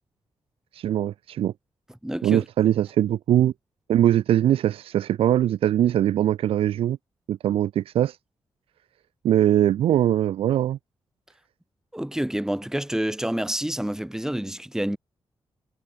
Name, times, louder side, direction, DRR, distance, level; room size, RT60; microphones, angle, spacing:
voice 1, 0.7-1.5 2.2-3.5 3.9-7.0 7.3-8.2 9.2-10.8, right 11 dB, 90° right, 0.4 m, -21 dB
voice 2, 2.0-2.5 11.9-15.0, right 1 dB, 5° right, 2.1 m, -28 dB
cardioid pair, 75°, 9 cm